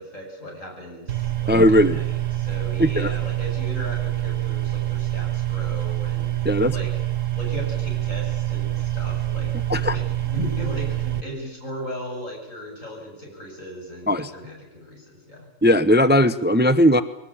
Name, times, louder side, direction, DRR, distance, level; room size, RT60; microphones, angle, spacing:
voice 1, 0.0-6.9 7.3-10.0 10.3-15.5, equal, 85° left, 0 dB, 8.6 m, -37 dB
sound 1, 1.1-11.2, right 14 dB, 80° right, 1.7 m, -26 dB
voice 2, 1.5-2.0 2.8-3.1 6.4-6.7 9.7-10.0 14.1-14.3 15.6-17.0, equal, 10° right, 12 dB, 0.7 m, -17 dB
22.5 x 19.5 x 8.6 m, 0.92 s
omnidirectional pair, 1.3 m